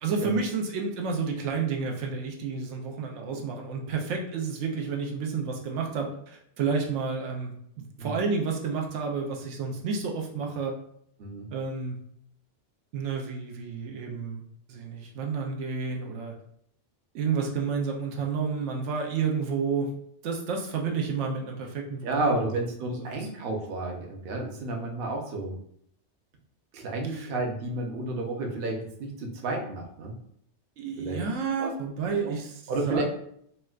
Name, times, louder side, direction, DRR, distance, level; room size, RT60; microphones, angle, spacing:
voice 1, 0.0-10.8 11.5-12.0 12.9-14.4 14.7-16.3 17.1-19.9 20.2-22.3 22.9-23.3 27.0-27.3 30.8-33.0, right 5 dB, 85° right, 1 dB, 0.9 m, -30 dB
voice 2, 22.0-25.6 26.7-30.1 31.0-31.2 31.6-31.7 32.2-32.3 32.7-33.0, right 2 dB, 60° right, 1 dB, 0.8 m, -31 dB
4.2 x 2.1 x 2.3 m, 0.69 s
omnidirectional pair, 1.2 m